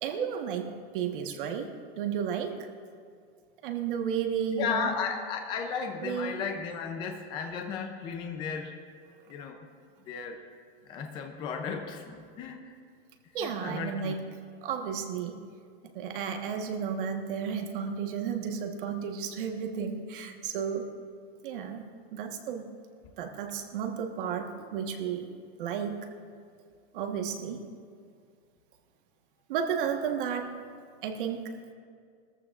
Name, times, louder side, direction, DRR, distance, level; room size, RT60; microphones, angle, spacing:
voice 1, 0.0-0.7 0.9-1.7 1.9-2.6 3.6-4.9 6.0-6.4 13.3-14.3 14.6-15.4 15.9-20.8 21.4-22.7 23.2-25.3 25.6-26.0 26.9-27.6 29.5-30.5 31.0-31.4, right 7 dB, 55° right, 4 dB, 1.3 m, -32 dB
voice 2, 4.5-8.7 9.3-9.7 10.1-10.4 10.9-12.7 13.4-14.1, left 6 dB, 15° left, 4 dB, 0.5 m, -35 dB
20.5 x 14.0 x 2.5 m, 2.1 s
supercardioid pair, 175°, 31 cm